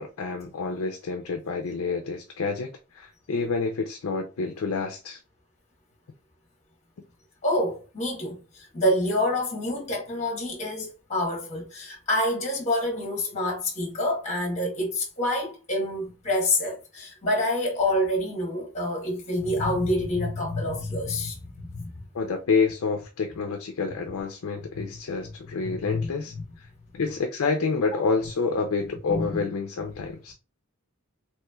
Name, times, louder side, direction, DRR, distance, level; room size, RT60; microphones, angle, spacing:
voice 1, 0.0-5.2 22.1-26.7 26.9-30.3, left 4 dB, 70° left, 0.4 m, -28 dB
voice 2, 7.4-21.8 24.7-24.8 25.6-26.1 26.3-26.4 29.1-29.3, left 1 dB, 30° left, 1.1 m, -27 dB
3.0 x 3.0 x 2.2 m
head